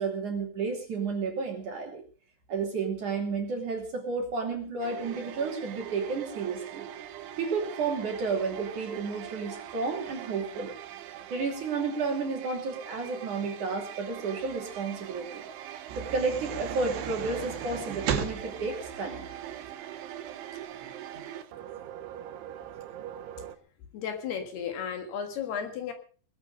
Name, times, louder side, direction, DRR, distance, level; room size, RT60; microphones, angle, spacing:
voice 1, 0.0-2.0 2.5-6.9 7.4-10.7 11.3-15.5 16.0-19.3 20.8-21.2, right 4 dB, 45° right, 3 dB, 3.9 m, -32 dB
sound 1, 4.8-23.6, right 11 dB, 85° right, 3.6 m, -42 dB
sound 2, 15.9-19.7, right 9 dB, 70° right, 3.7 m, -36 dB
voice 2, 23.9-25.9, left 7 dB, 65° left, 7 dB, 3.4 m, -34 dB
20.5 x 8.8 x 6.6 m, 0.42 s
omnidirectional pair, 5.4 m